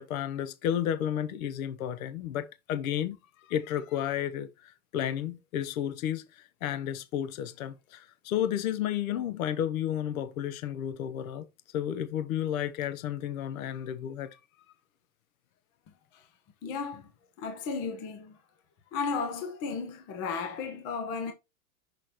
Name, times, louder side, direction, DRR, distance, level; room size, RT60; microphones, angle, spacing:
voice 1, 0.0-3.2 3.5-11.4 11.7-14.4, left 10 dB, 60° left, 1.0 m, -32 dB
voice 2, 16.6-17.1 17.4-18.4 18.9-21.3, left 5 dB, 30° left, 1.3 m, -34 dB
6.6 x 6.2 x 2.9 m
supercardioid pair, 150°, 46 cm